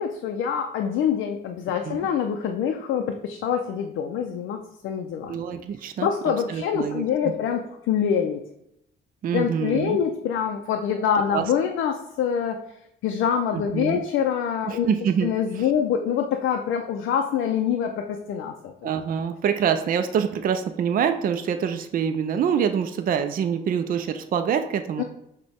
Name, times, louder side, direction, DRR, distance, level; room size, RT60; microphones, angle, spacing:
voice 1, 0.0-4.6 4.8-5.4 6.0-8.4 9.3-12.6 13.0-14.9 15.2-18.9 25.0-25.1, left 8 dB, 80° left, 4 dB, 0.4 m, -25 dB
voice 2, 5.3-7.3 9.2-10.0 11.3-11.5 13.5-14.0 14.7-15.7 18.8-25.0, right 7 dB, 45° right, 8 dB, 0.4 m, -26 dB
6.1 x 2.2 x 3.4 m, 0.79 s
cardioid pair, 90°, 20 cm